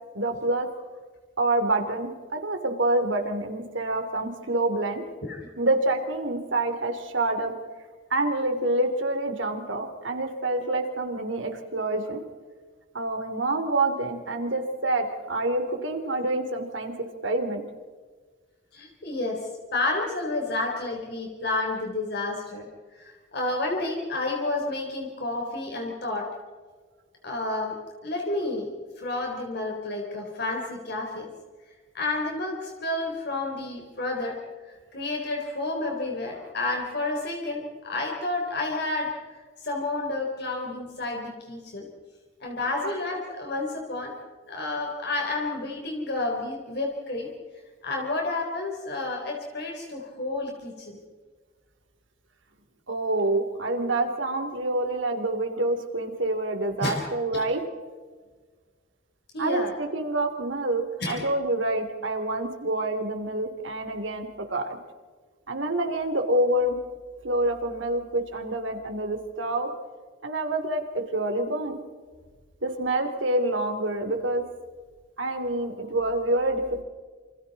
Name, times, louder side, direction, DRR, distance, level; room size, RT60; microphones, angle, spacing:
voice 1, 0.1-0.7 1.4-5.0 5.6-7.5 8.1-12.2 12.9-16.9 17.2-17.6 42.6-42.7 52.9-57.6 59.4-64.8 65.5-66.8 67.2-69.7 70.2-71.8 72.6-74.4 75.2-76.8, right 2 dB, 80° right, 5 dB, 3.2 m, -27 dB
voice 2, 18.7-19.4 19.7-22.7 22.9-26.3 27.2-27.8 28.0-31.3 31.9-34.4 34.7-39.1 39.6-41.9 42.4-44.1 44.5-47.3 47.8-51.0 56.8-57.1 57.3-57.4 59.3-59.7 61.0-61.2, left 2 dB, 60° left, 0 dB, 3.9 m, -30 dB
28.0 x 26.5 x 4.2 m, 1.5 s
head